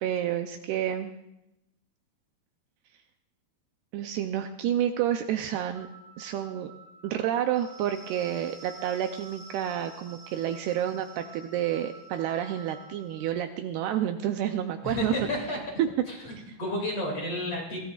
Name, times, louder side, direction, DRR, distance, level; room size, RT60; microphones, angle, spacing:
voice 1, 0.0-1.1 3.9-5.9 6.2-6.7 7.0-15.1 15.8-15.9 16.5-16.6, right 10 dB, 80° right, 6 dB, 2.5 m, -29 dB
sound 1, 5.7-13.3, right 3 dB, 25° right, 1.6 m, -49 dB
voice 2, 14.8-15.6 16.1-17.8, left 1 dB, 40° left, 0 dB, 2.9 m, -32 dB
23.0 x 16.5 x 2.4 m, 0.87 s
omnidirectional pair, 5.0 m